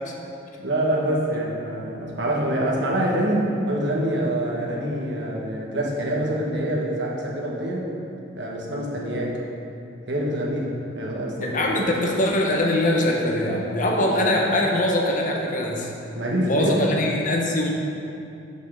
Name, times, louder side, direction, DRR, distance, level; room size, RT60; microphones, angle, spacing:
voice 1, 0.6-7.9 8.3-9.4 10.1-10.7 10.9-11.8 16.1-16.9, right 1 dB, 65° right, -3 dB, 1.3 m, -25 dB
voice 2, 11.4-15.9 16.5-17.7, left 1 dB, 45° left, 0 dB, 1.0 m, -22 dB
6.5 x 5.4 x 6.3 m, 2.6 s
head